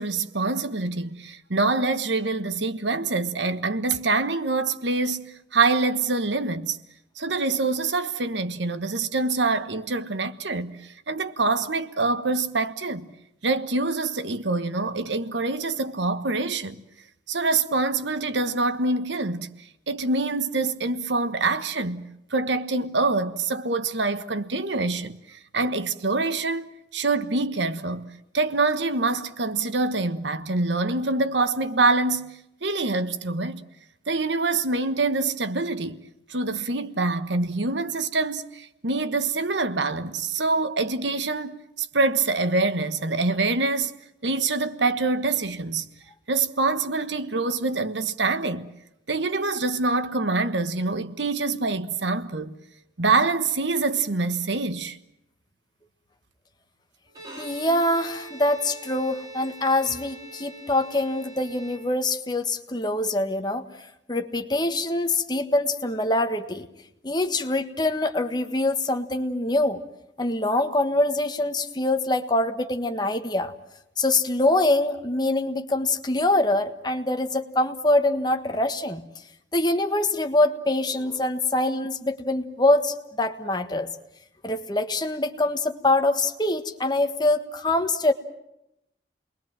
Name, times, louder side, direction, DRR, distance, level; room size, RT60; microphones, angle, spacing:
voice 1, 0.0-6.8 7.2-13.1 13.4-16.8 17.3-19.5 19.9-33.6 34.1-36.0 36.3-44.0 44.2-45.9 46.3-48.7 49.1-52.5 53.0-55.0, right 3 dB, 80° right, 1.3 m, -25 dB
Bowed string instrument, 57.1-62.3, right 2 dB, 20° right, 3.9 m, -44 dB
voice 2, 57.4-63.8 64.1-66.6 67.0-69.8 70.2-73.5 74.0-79.0 79.5-83.9 84.4-88.1, left 2 dB, 25° left, 1.6 m, -24 dB
29.5 x 21.0 x 7.6 m
head